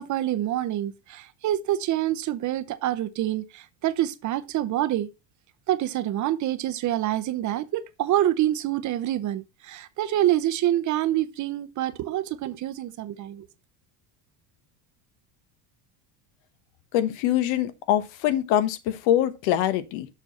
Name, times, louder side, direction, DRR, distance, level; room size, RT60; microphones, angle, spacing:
voice 1, 0.0-5.1 5.7-13.5, right 13 dB, 40° right, 0.7 m, -26 dB
voice 2, 16.9-20.1, left 11 dB, 70° left, 1.2 m, -24 dB
7.0 x 5.9 x 4.1 m
cardioid pair, 140°, 46 cm